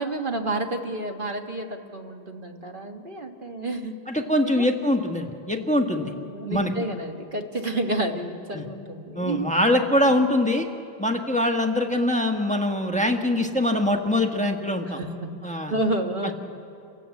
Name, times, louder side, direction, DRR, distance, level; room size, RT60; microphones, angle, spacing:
voice 1, 0.0-3.9 4.4-4.6 6.0-9.5 14.9-15.4 15.7-16.3, right 2 dB, 30° right, 4 dB, 1.3 m, -30 dB
voice 2, 4.1-6.1 6.5-6.7 8.5-8.7 9.1-10.7 11.0-15.0 15.4-15.7 16.2-16.3, left 1 dB, 5° left, 3 dB, 1.1 m, -23 dB
29.0 x 16.5 x 8.3 m, 2.7 s
omnidirectional pair, 2.1 m